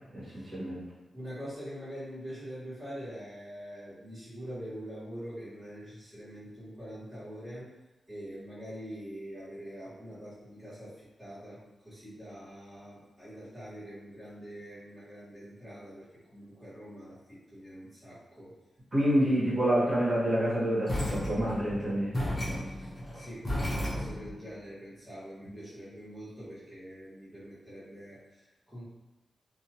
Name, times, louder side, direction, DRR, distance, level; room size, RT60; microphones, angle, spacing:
voice 1, 0.1-0.8 18.9-22.1, equal, 40° right, -8 dB, 1.3 m, -27 dB
voice 2, 1.1-7.7 8.1-18.5 19.2-19.4 22.6-28.8, equal, ahead, -12 dB, 1.4 m, -44 dB
sound 1, 20.9-24.4, equal, 30° left, 0.8 m, -33 dB
2.7 x 2.3 x 2.9 m, 1.0 s
wide cardioid pair, 110°, 0 cm